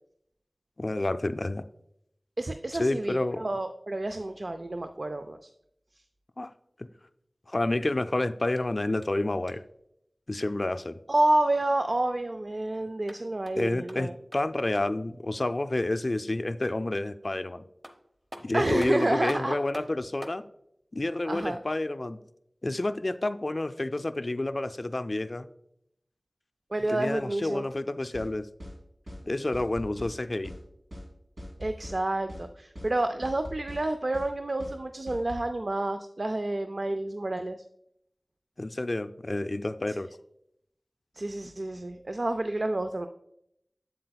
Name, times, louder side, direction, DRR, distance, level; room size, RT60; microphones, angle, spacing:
voice 1, 0.8-1.6 2.7-3.5 6.4-6.5 6.8-6.9 7.5-9.6 10.3-11.0 13.6-17.6 18.4-20.4 20.9-22.2 22.6-25.5 26.9-28.4 29.2-30.5 38.6-40.1, left 2 dB, 50° left, 11 dB, 0.4 m, -29 dB
voice 2, 2.4-5.5 11.1-14.1 18.5-19.5 21.3-21.6 26.7-27.7 31.6-37.6 39.9-40.0 41.2-43.1, right 2 dB, 55° right, 8 dB, 0.3 m, -29 dB
sound 1, 8.5-9.8 12.8-15.1 17.4-17.5 17.8-20.5, equal, 25° right, 0.9 m, -48 dB
sound 2, 28.1-28.3 28.6-28.8 29.1-29.2 29.5-30.1 30.4-30.6 30.9-31.1 31.4-32.0 32.3-32.5 32.8-32.9 33.2-33.8 34.1-34.3 34.6-34.8 35.1-35.4, left 1 dB, 80° right, 2.4 m, -41 dB
7.6 x 7.6 x 2.3 m, 0.75 s
wide cardioid pair, 45°, 0 cm